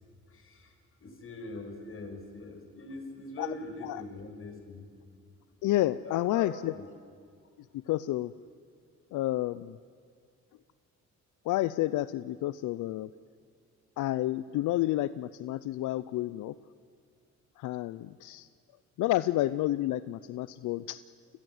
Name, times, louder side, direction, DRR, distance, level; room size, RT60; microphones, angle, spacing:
voice 1, 0.3-0.7 1.0-4.9 6.0-6.9, left 2 dB, 45° left, 4 dB, 6.2 m, -42 dB
voice 2, 5.6-6.7 7.9-8.3 9.1-9.8 11.4-13.1 14.0-16.5 17.6-18.5 19.0-21.0, left 15 dB, 85° left, 16 dB, 0.6 m, -30 dB
29.5 x 22.0 x 8.0 m, 2.2 s
cardioid pair, 90°, 30 cm